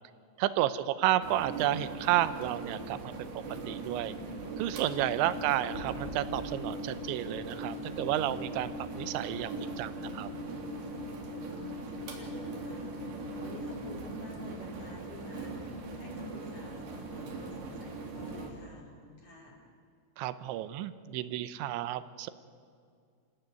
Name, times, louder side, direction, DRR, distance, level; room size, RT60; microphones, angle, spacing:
voice 1, 0.4-3.3 3.7-4.1 4.6-8.7 8.9-10.3 20.2-22.3, right 13 dB, 85° right, 14 dB, 3.1 m, -31 dB
sound 1, 1.2-18.5, right 3 dB, 70° right, 5.1 m, -41 dB
Alarm, 4.8-13.7, left 5 dB, 65° left, 2.5 m, -44 dB
voice 2, 11.2-12.9 13.4-19.6, left 1 dB, 35° left, 0 dB, 4.3 m, -50 dB
26.5 x 16.5 x 9.3 m, 2.2 s
omnidirectional pair, 5.2 m